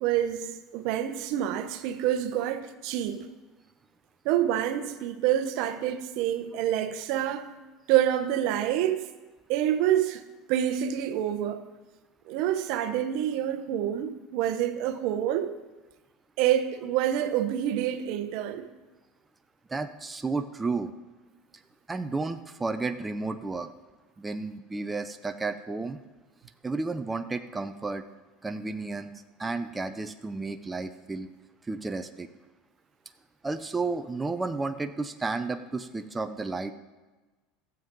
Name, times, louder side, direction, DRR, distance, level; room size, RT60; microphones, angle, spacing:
voice 1, 0.0-3.3 4.2-7.5 7.9-9.1 9.5-10.2 10.5-11.6 12.3-15.5 16.4-18.7, right 11 dB, 65° right, 0.9 m, -27 dB
voice 2, 19.7-20.9 21.9-23.7 24.2-26.0 26.6-28.0 28.4-29.1 29.4-31.3 31.7-32.3 33.4-36.7, right 3 dB, 15° right, 0.6 m, -32 dB
13.5 x 7.5 x 5.3 m
supercardioid pair, 100°, 0 cm